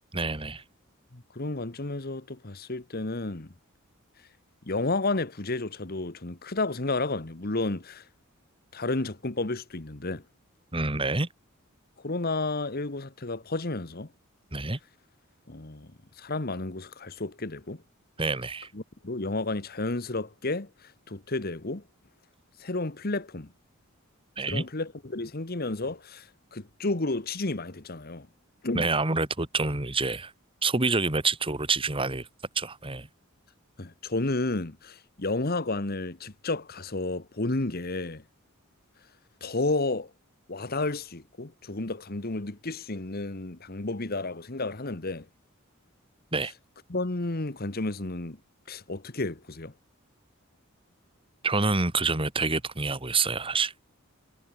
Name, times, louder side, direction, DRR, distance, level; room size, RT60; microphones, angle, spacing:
voice 1, 0.1-0.6 10.7-11.3 14.5-14.8 18.2-18.7 24.4-24.6 28.7-30.3 30.6-32.3 32.6-33.1 46.3-46.5 51.4-53.7, right 3 dB, 25° right, 2.1 m, -27 dB
voice 2, 1.1-3.5 4.6-8.0 8.7-10.2 12.0-14.1 15.5-17.8 18.7-21.8 22.6-23.5 24.5-28.3 28.6-28.9 33.8-38.2 39.4-40.1 40.5-45.3 46.9-48.4 48.7-49.7, left 2 dB, 45° left, 1.4 m, -31 dB
head